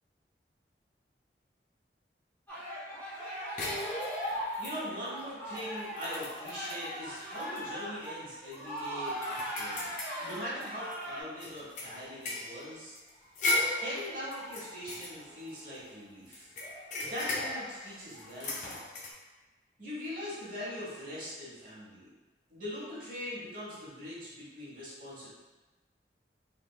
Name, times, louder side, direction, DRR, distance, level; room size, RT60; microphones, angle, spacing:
sound 1, 2.5-11.2, equal, 10° left, 0.8 m, -40 dB
sound 2, 3.6-5.1 5.6-5.7 6.0-6.9 7.4-7.6 8.0-8.1 8.5-10.9 11.4-15.9 16.3-19.1, left 2 dB, 45° left, 0.4 m, -36 dB
voice 1, 4.6-9.9 10.2-13.0 13.8-16.5 17.0-18.8 19.8-22.1 22.5-25.3, equal, 45° right, -8 dB, 1.1 m, -41 dB
3.3 x 2.9 x 2.3 m, 1.2 s
head